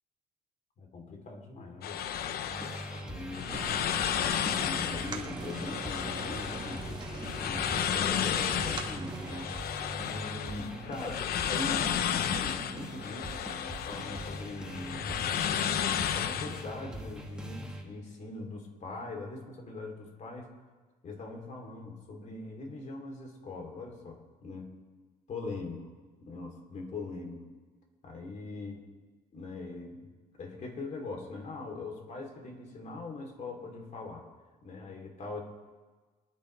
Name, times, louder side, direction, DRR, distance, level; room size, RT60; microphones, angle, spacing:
voice 1, 0.8-2.0 3.0-3.5 4.2-7.0 7.5-9.5 10.0-13.4 13.9-15.7 16.1-20.5 21.0-24.7 25.3-25.9 26.2-27.5 28.0-28.8 29.3-30.0 30.3-34.3 34.6-35.4, left 3 dB, 45° left, 1 dB, 3.3 m, -41 dB
sound 1, 1.8-16.7, left 9 dB, 65° left, 0.8 m, -33 dB
sound 2, 2.5-17.8, right 1 dB, 5° right, 2.2 m, -42 dB
sound 3, 3.5-9.5, right 4 dB, 25° right, 2.2 m, -42 dB
25.0 x 10.5 x 3.4 m, 1.3 s
cardioid pair, 110°, 17 cm